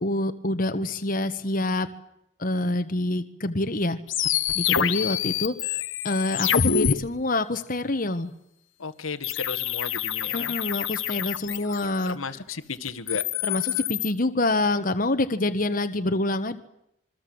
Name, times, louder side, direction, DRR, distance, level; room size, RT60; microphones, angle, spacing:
voice 1, 0.0-1.9 2.4-4.0 4.5-5.5 6.0-8.3 10.3-12.2 13.4-16.6, left 2 dB, 40° left, 8 dB, 1.3 m, -26 dB
sound 1, 4.1-6.9 9.2-12.0 12.9-14.1, left 8 dB, 70° left, 1.3 m, -26 dB
voice 2, 8.8-10.5 12.0-13.2, left 4 dB, 90° left, 9 dB, 1.6 m, -34 dB
26.5 x 23.0 x 7.9 m, 0.79 s
head